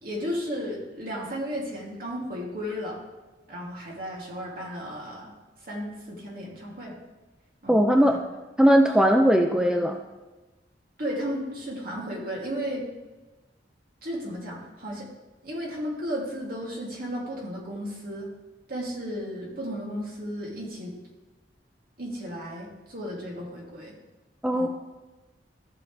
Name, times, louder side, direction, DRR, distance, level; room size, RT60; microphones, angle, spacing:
voice 1, 0.0-3.0 3.5-5.3 5.6-6.9 7.6-8.2 11.0-12.9 14.0-15.1 15.4-18.3 18.7-20.9 22.0-23.9 24.5-24.7, equal, 55° right, -3 dB, 2.6 m, -34 dB
voice 2, 7.7-8.2 8.6-10.0 24.4-24.7, equal, 5° right, 3 dB, 0.5 m, -19 dB
14.5 x 6.3 x 3.3 m, 1.2 s
head